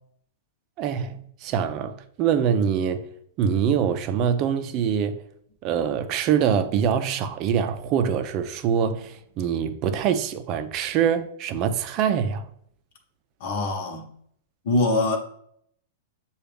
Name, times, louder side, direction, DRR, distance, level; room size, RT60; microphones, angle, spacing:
voice 1, 0.8-3.1 3.4-5.2 5.6-12.5, right 8 dB, 40° right, 0.4 m, -24 dB
voice 2, 13.4-14.1 14.6-15.2, left 2 dB, 60° left, 1.0 m, -23 dB
6.7 x 2.3 x 3.4 m
hypercardioid pair, 135°, 0 cm